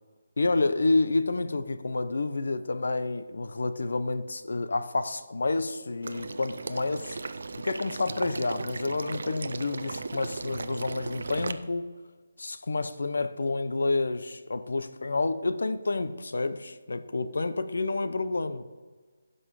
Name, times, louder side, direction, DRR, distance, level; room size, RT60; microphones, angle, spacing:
voice 1, 0.4-7.2 7.5-11.9 12.4-18.7, left 3 dB, 75° left, 0.7 m, -29 dB
Water / Liquid, 6.0-11.5, right 3 dB, 60° right, 0.5 m, -36 dB
11.0 x 5.5 x 4.8 m
hypercardioid pair, 175°, 0 cm